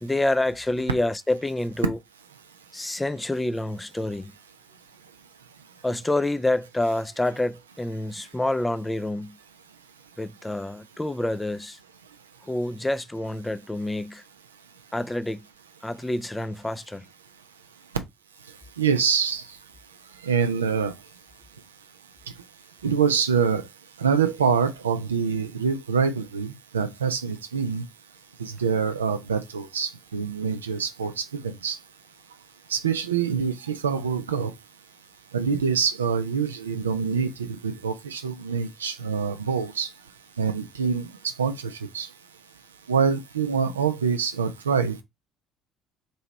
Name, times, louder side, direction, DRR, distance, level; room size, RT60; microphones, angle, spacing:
voice 1, 0.0-2.0 2.7-4.3 5.8-9.4 10.2-11.8 12.4-14.2 14.9-15.4 15.8-17.0, left 1 dB, 10° left, 0.3 m, -27 dB
voice 2, 18.8-19.5 20.2-20.9 22.8-23.7 24.0-27.8 28.4-31.8 32.7-34.5 35.3-39.9 40.4-42.1 42.9-45.0, right 6 dB, 85° right, 0.4 m, -25 dB
3.0 x 2.8 x 4.3 m
figure-of-eight pair, 55°, 0 cm